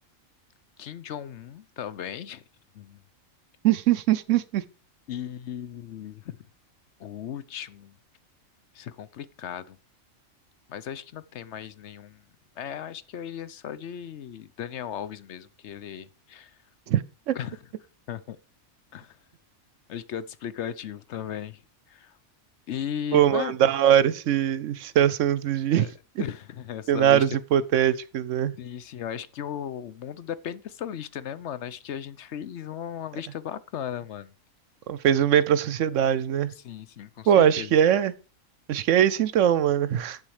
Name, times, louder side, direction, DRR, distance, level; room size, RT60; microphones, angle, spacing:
voice 1, 0.8-2.4 2.7-3.0 5.1-6.4 7.0-7.9 8.7-9.8 10.7-12.2 12.6-16.6 17.3-17.6 18.1-18.4 18.9-19.2 19.9-21.6 21.9-22.2 22.7-23.6 25.7-25.9 26.2-27.3 28.6-34.3 36.6-37.8, left 9 dB, 60° left, 0.9 m, -36 dB
voice 2, 3.6-4.6 16.9-17.4 23.1-25.9 26.2-26.3 26.9-28.5 34.9-36.5 37.3-38.1 38.7-40.2, right 10 dB, 70° right, 0.9 m, -22 dB
8.3 x 7.3 x 4.8 m
omnidirectional pair, 1.4 m